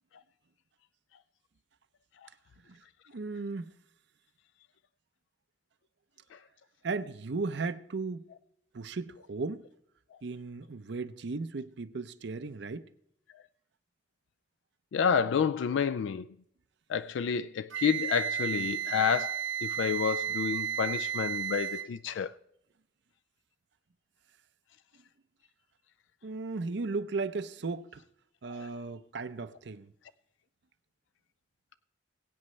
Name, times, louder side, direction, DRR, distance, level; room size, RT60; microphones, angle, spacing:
voice 1, 3.1-3.7 6.8-8.2 8.7-9.6 10.2-12.9 26.2-28.0 28.4-29.9, right 3 dB, 65° right, 0.6 m, -36 dB
voice 2, 14.9-16.2 16.9-22.3 28.5-28.7, left 7 dB, 75° left, 0.3 m, -29 dB
Wind instrument woodwind instrument, 17.7-21.9, right 9 dB, 85° right, 0.9 m, -33 dB
21.5 x 8.6 x 3.2 m
head